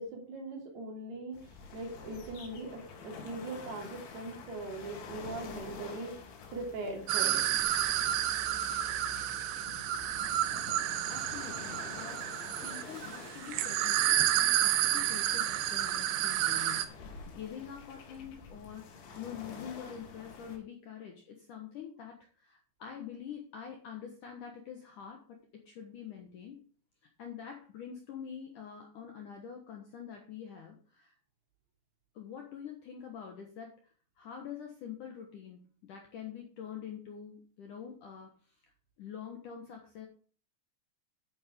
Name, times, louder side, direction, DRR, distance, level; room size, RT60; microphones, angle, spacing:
voice 1, 0.0-6.2 6.5-7.4, right 2 dB, 60° right, 1 dB, 4.6 m, -41 dB
sound 1, 1.3-20.6, left 5 dB, 85° left, 4.5 m, -48 dB
sound 2, 7.1-16.9, right 12 dB, 80° right, 2.6 m, -30 dB
voice 2, 11.1-12.3 12.6-26.6 27.2-31.1 32.1-38.6 39.0-40.1, left 8 dB, 65° left, 2 dB, 2.1 m, -46 dB
10.5 x 8.8 x 3.7 m, 0.41 s
omnidirectional pair, 5.3 m